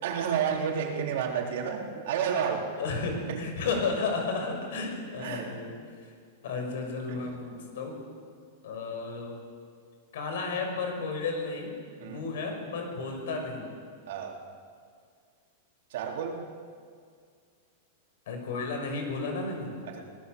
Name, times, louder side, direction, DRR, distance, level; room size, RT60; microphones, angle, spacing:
voice 1, 0.0-2.7 3.3-3.4 5.2-5.5 7.1-7.2 12.0-12.2 14.1-14.4 15.9-16.4 19.9-20.1, right 7 dB, 65° right, 1 dB, 3.7 m, -30 dB
voice 2, 2.8-5.7 6.0-6.1 6.4-8.0 8.6-9.3 10.1-11.7 12.0-13.7 18.3-19.7, left 4 dB, 75° left, 3 dB, 6.4 m, -33 dB
25.5 x 18.0 x 6.9 m, 2.1 s
supercardioid pair, 155°, 0 cm